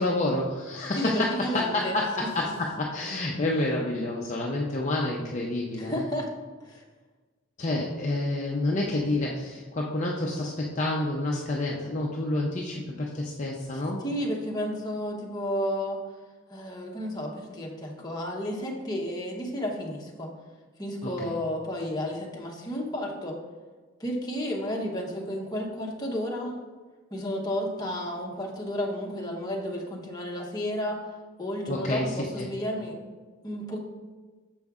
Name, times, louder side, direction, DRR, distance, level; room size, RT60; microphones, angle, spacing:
voice 1, 0.0-6.0 7.6-14.0 21.0-21.3 31.7-32.5, left 2 dB, 35° left, -2 dB, 0.6 m, -29 dB
voice 2, 0.9-2.0 5.7-6.3 6.6-6.8 14.0-16.0 16.5-20.3 20.8-23.4 24.0-26.6 27.1-31.0 31.4-33.0 33.4-33.8, equal, 20° left, -1 dB, 0.9 m, -32 dB
6.9 x 5.3 x 3.6 m, 1.3 s
head